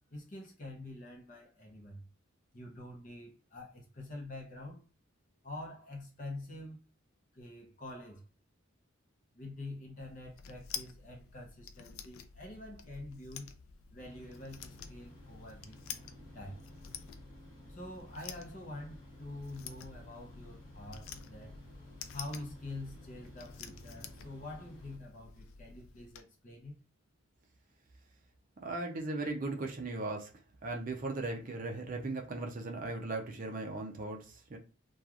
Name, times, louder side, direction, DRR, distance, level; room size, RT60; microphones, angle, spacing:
voice 1, 0.1-2.0 2.5-4.8 5.4-6.8 7.3-8.2 9.3-13.5 13.9-15.8 16.3-16.7 17.7-21.5 22.1-26.8, left 2 dB, 40° left, 0.7 m, -46 dB
sound 1, 10.0-26.2, left 8 dB, 85° left, 0.3 m, -49 dB
sound 2, 14.0-25.0, left 1 dB, 15° left, 1.3 m, -54 dB
voice 2, 28.6-30.3 30.6-34.6, right 2 dB, 40° right, 0.5 m, -37 dB
2.9 x 2.3 x 2.4 m
head